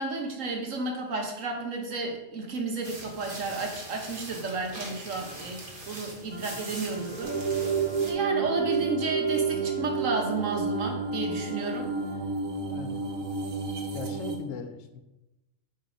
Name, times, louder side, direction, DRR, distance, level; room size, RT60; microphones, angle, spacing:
voice 1, 0.0-7.3 8.0-11.9, right 3 dB, 75° right, 2 dB, 1.5 m, -32 dB
sound 1, 2.8-8.1, right 1 dB, 40° right, 1.5 m, -42 dB
Wind instrument woodwind instrument, 6.3-12.3, right 4 dB, 20° right, 0.4 m, -48 dB
sound 2, 7.2-14.4, right 5 dB, 90° right, 1.4 m, -30 dB
voice 2, 12.7-13.0 13.9-15.0, left 6 dB, 70° left, 7 dB, 1.0 m, -39 dB
8.4 x 3.4 x 5.1 m, 0.97 s
omnidirectional pair, 1.4 m